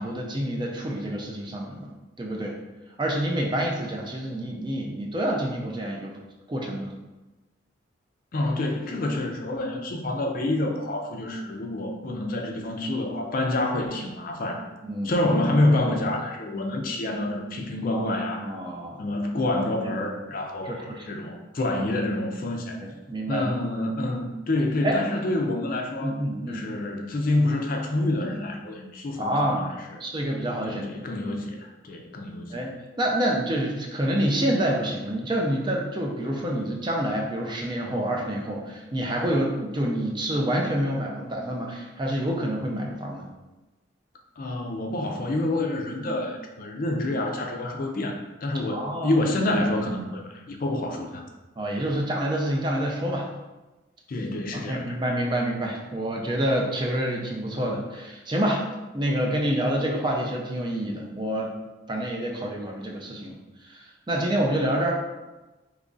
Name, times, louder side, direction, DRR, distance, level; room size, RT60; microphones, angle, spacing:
voice 1, 0.0-1.9 2.2-2.6 3.0-6.1 6.5-6.9 14.8-15.3 17.9-19.0 20.6-21.2 23.1-23.5 24.8-25.0 26.0-26.6 29.2-29.6 30.0-30.8 32.5-32.7 33.0-43.3 48.7-49.2 51.6-53.3 54.5-58.7 58.9-61.6 61.9-63.4 63.7-65.0, right 1 dB, 25° right, 0 dB, 0.4 m, -27 dB
voice 2, 8.3-14.6 15.0-18.5 19.0-22.8 23.3-26.2 26.5-29.7 30.6-32.6 44.4-51.2 54.1-55.0, left 1 dB, 45° left, 2 dB, 0.4 m, -27 dB
3.0 x 2.4 x 3.8 m, 1.1 s
head